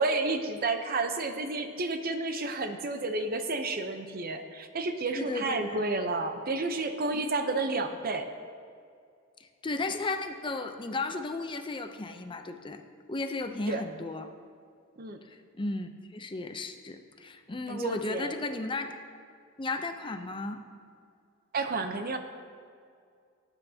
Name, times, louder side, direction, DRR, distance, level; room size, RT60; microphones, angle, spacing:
voice 1, 0.0-8.3 13.7-13.8 15.0-15.2 17.7-18.3 21.5-22.2, right 3 dB, 50° right, 7 dB, 0.7 m, -31 dB
voice 2, 5.1-5.8 7.1-7.2 9.4-12.8 13.1-14.3 15.3-18.9 19.6-20.6, left 3 dB, 25° left, 7 dB, 0.6 m, -35 dB
18.0 x 9.0 x 2.8 m, 2.3 s
head